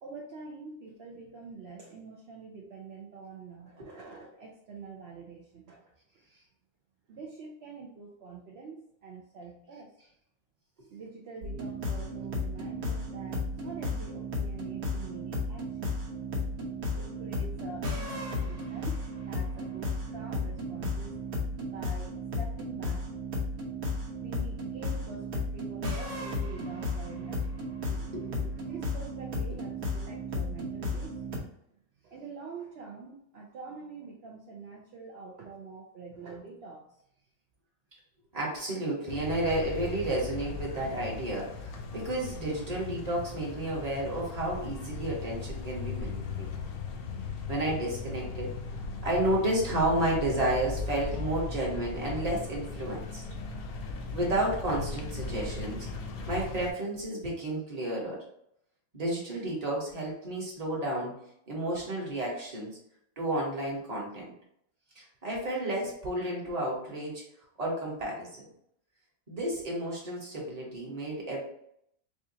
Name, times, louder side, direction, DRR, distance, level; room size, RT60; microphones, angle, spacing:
voice 1, 0.0-5.9 7.1-9.9 10.9-16.0 16.9-23.1 24.1-28.0 28.7-31.2 32.0-37.0, right 4 dB, 60° right, -1 dB, 0.7 m, -46 dB
sound 1, 11.4-31.4, left 2 dB, 80° right, 1.5 m, -34 dB
voice 2, 27.9-28.5 38.3-46.5 47.5-48.5 49.0-53.2 54.1-55.9 56.3-58.2 58.9-61.1 61.5-62.7 63.2-64.2 64.9-67.2 67.6-68.5 69.3-71.4, right 1 dB, 30° right, -3 dB, 1.2 m, -31 dB
sound 2, 39.1-56.7, left 4 dB, 80° left, 1.1 m, -38 dB
4.9 x 2.4 x 2.7 m, 0.72 s
omnidirectional pair, 1.5 m